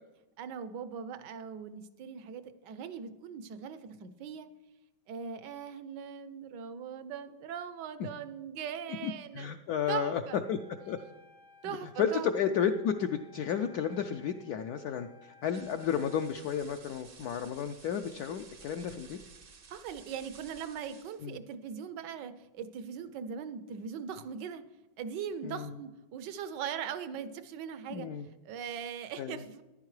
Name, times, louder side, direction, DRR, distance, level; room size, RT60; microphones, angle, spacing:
voice 1, 0.4-4.5 5.1-9.5 9.9-10.4 11.6-12.6 19.7-24.6 25.0-28.1 28.4-29.6, right 7 dB, 70° right, 12 dB, 1.3 m, -40 dB
voice 2, 9.0-10.2 10.5-10.6 10.9-11.0 11.6-19.2 21.2-21.4 25.4-25.8 27.9-28.3 29.2-29.4, left 8 dB, 75° left, 6 dB, 0.9 m, -32 dB
Wind instrument woodwind instrument, 10.4-16.4, left 3 dB, 90° right, 3.7 m, -58 dB
sound 1, 15.4-21.3, right 5 dB, 50° right, 0.7 m, -55 dB
14.0 x 11.0 x 3.2 m, 1.1 s
omnidirectional pair, 2.0 m